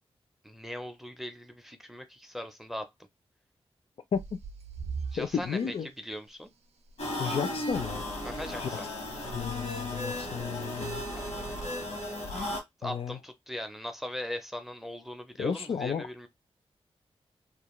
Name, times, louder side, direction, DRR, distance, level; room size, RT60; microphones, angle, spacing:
voice 1, 0.4-2.9 5.1-5.7 6.0-6.5 8.2-8.9 11.1-12.2 12.8-16.3, equal, 5° right, 0.4 m, -40 dB
sound 1, 4.1-5.8 6.9-7.0 7.3-7.4 7.7-8.1 9.0-9.7 10.1-10.6 11.3-11.7 12.4-12.5, right 5 dB, 80° right, 0.4 m, -42 dB
voice 2, 5.2-5.9 7.2-8.0 8.6-8.7 9.3-11.1 12.8-13.2 15.4-16.1, left 7 dB, 60° left, 0.4 m, -32 dB
sound 2, 7.0-12.6, left 1 dB, 85° left, 1.0 m, -35 dB
2.3 x 2.3 x 3.0 m
wide cardioid pair, 150°, 11 cm